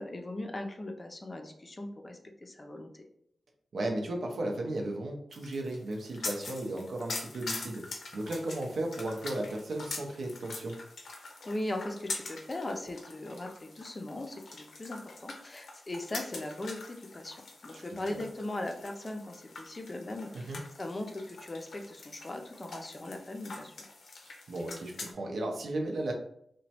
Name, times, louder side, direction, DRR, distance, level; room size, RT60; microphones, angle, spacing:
voice 1, 0.0-3.0 11.5-23.8, left 1 dB, 30° left, 4 dB, 0.4 m, -39 dB
voice 2, 3.7-10.8 17.7-17.8 18.1-18.2 20.3-20.6 24.5-26.1, right 1 dB, 80° right, 1 dB, 0.6 m, -35 dB
sound 1, 5.3-25.1, left 3 dB, 80° left, 0.5 m, -44 dB
3.0 x 2.1 x 2.8 m, 0.71 s
wide cardioid pair, 105°, 0 cm